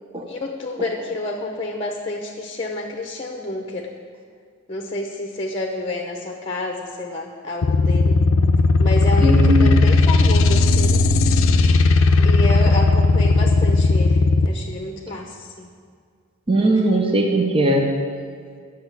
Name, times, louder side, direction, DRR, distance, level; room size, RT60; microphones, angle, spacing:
voice 1, 0.3-3.9 4.7-8.2 8.8-11.0 11.9-15.7 16.6-16.8, left 2 dB, 25° left, 2 dB, 0.8 m, -29 dB
sound 1, 7.6-14.5, left 3 dB, 70° left, 0.6 m, -16 dB
voice 2, 9.2-9.8 16.5-17.9, right 1 dB, 25° right, 2 dB, 0.9 m, -18 dB
10.5 x 6.5 x 8.2 m, 2.1 s
head